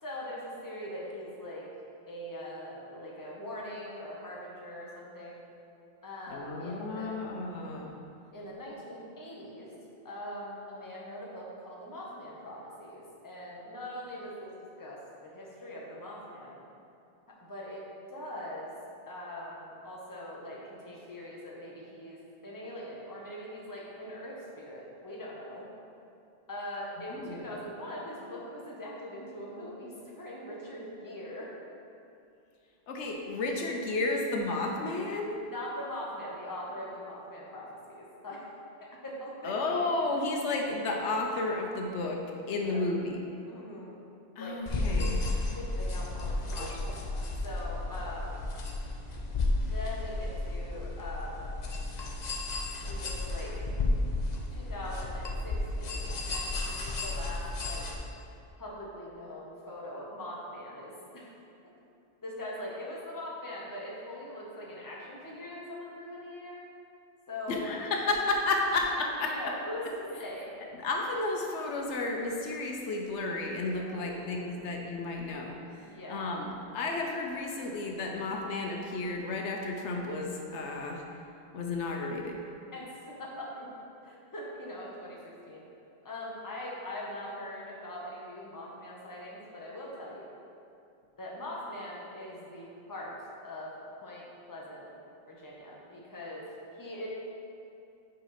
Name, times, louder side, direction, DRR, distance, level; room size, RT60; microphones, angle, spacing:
voice 1, 0.0-1.7 2.1-5.4 6.0-7.3 8.3-9.7 10.0-14.5 14.8-16.6 17.3-17.8 18.1-18.7 19.1-25.7 26.5-31.5 35.4-38.4 38.8-39.9 42.5-42.9 43.5-44.0 44.4-44.6 45.5-48.4 49.6-51.5 52.9-53.7 54.5-57.9 58.6-61.3 62.2-66.6 67.3-67.7 69.0-69.9 70.2-70.5 73.7-74.7 75.8-76.3 82.7-83.7 84.0-85.2 85.5-85.6 86.0-90.3 91.2-93.1 93.4-93.7 94.0-94.9 95.3-96.5 96.8-97.1, left 1 dB, 20° left, -4 dB, 1.0 m, -42 dB
voice 2, 6.3-7.9 27.1-27.6 32.9-35.4 39.4-42.2 42.5-43.2 44.4-45.2 67.5-69.3 70.8-75.6 76.1-76.5 76.7-81.0 81.5-82.4, left 2 dB, 80° left, 1 dB, 1.0 m, -32 dB
sound 1, 44.7-57.9, left 2 dB, 45° left, 0.7 m, -33 dB
5.4 x 4.9 x 5.7 m, 2.6 s
omnidirectional pair, 1.2 m